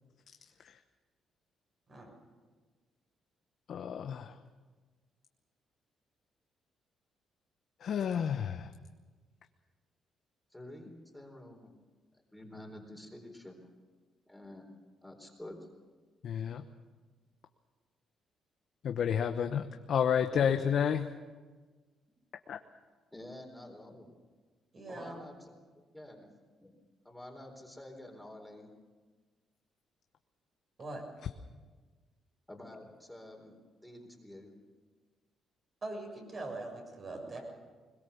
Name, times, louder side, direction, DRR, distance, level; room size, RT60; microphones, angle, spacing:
voice 1, 3.7-4.3 7.8-8.7 16.2-16.6 18.8-21.1 22.5-22.6, left 8 dB, 65° left, 6 dB, 1.0 m, -30 dB
voice 2, 10.5-11.7 12.3-13.7 14.3-14.7 15.0-15.7 20.3-20.6 23.1-24.2 24.9-26.3 26.6-26.7 27.0-28.7 32.5-33.6 33.8-34.5, left 1 dB, 5° left, 2 dB, 4.0 m, -49 dB
voice 3, 24.7-25.2 30.8-31.0 35.8-37.4, right 2 dB, 40° right, 2 dB, 7.1 m, -42 dB
21.5 x 21.0 x 7.0 m, 1.4 s
cardioid pair, 90°, 0 cm